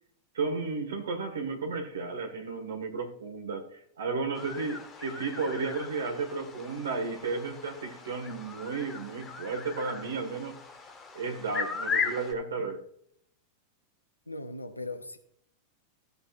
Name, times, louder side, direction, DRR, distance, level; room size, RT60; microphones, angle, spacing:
voice 1, 0.3-10.6 11.1-12.8, right 4 dB, 65° right, 1.8 m, -33 dB
sound 1, 4.3-12.3, left 5 dB, 20° left, 1.4 m, -38 dB
voice 2, 14.3-15.2, left 2 dB, 85° left, 0.9 m, -38 dB
16.0 x 6.8 x 2.6 m
figure-of-eight pair, 90°, 0 cm